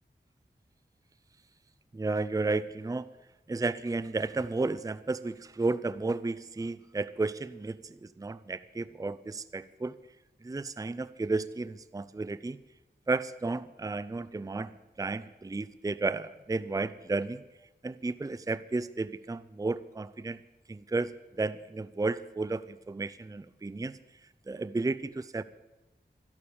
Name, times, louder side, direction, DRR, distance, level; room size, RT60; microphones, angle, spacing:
voice 1, 1.9-3.0 3.5-9.9 10.4-12.6 13.1-14.7 15.0-17.4 17.8-20.4 20.7-24.0 24.5-25.4, right 3 dB, 20° right, 15 dB, 0.5 m, -33 dB
12.5 x 12.0 x 8.5 m, 1.1 s
wide cardioid pair, 80°, 18 cm